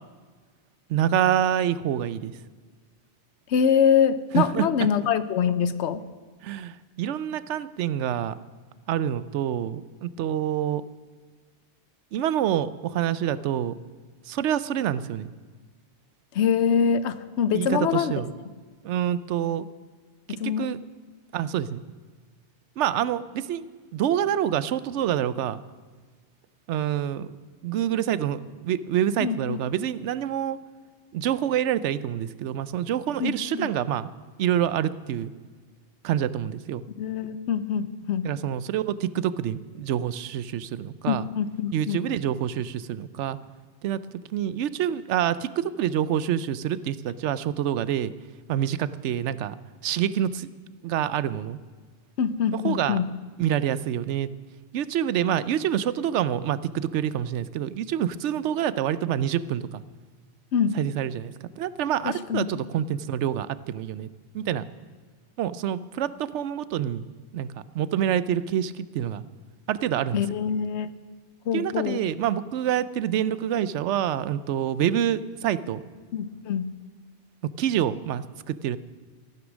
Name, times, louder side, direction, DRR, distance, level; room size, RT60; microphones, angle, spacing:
voice 1, 0.9-2.3 4.3-4.7 6.4-8.4 8.9-10.8 12.1-13.7 14.3-15.3 17.5-18.3 18.8-19.7 20.3-20.8 21.3-21.8 22.8-23.6 23.9-25.6 26.7-27.3 27.6-30.6 31.1-34.1 34.4-35.3 36.0-36.8 38.2-41.3 41.7-43.4 43.8-44.0 44.3-48.1 48.5-49.5 49.8-50.5 50.8-51.6 52.5-53.0 53.4-54.3 54.7-59.8 60.7-64.1 64.3-64.6 65.4-67.1 67.3-69.2 69.7-70.2 71.5-75.8 77.6-78.8, right 10 dB, 90° right, 16 dB, 0.9 m, -27 dB
voice 2, 3.5-6.0 16.3-18.1 20.3-20.7 29.2-29.6 33.2-33.7 37.0-38.3 41.1-42.1 52.2-53.1 60.5-60.8 62.0-62.5 70.1-70.9 71.5-72.0 76.1-76.7, left 7 dB, 80° left, 14 dB, 0.9 m, -24 dB
15.0 x 9.4 x 6.2 m, 1.5 s
omnidirectional pair, 1.2 m